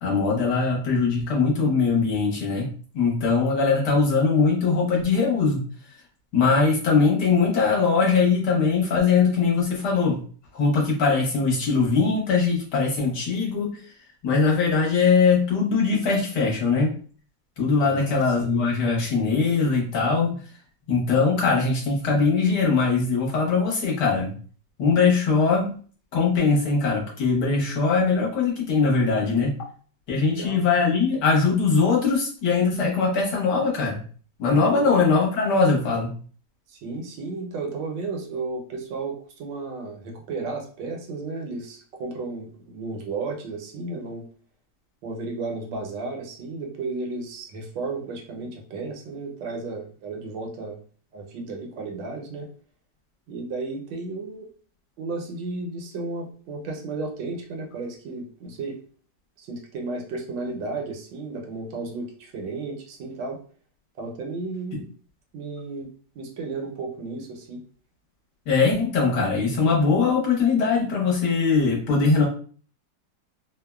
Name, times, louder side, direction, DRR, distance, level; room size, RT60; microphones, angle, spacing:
voice 1, 0.0-2.7 2.9-5.6 6.3-10.2 10.5-13.8 14.2-16.9 17.6-20.4 20.9-24.3 24.8-25.7 26.1-29.6 30.1-34.0 34.4-36.1 68.5-72.3, left 4 dB, 65° left, -3 dB, 1.4 m, -21 dB
voice 2, 17.8-18.6 30.3-30.6 34.6-35.0 36.7-44.2 45.0-50.8 51.1-52.5 53.3-54.5 55.0-58.8 59.4-63.4 64.0-64.8 65.3-65.9 66.1-67.6, right 3 dB, 80° right, 1 dB, 1.4 m, -33 dB
3.5 x 2.0 x 2.2 m, 0.43 s
omnidirectional pair, 2.0 m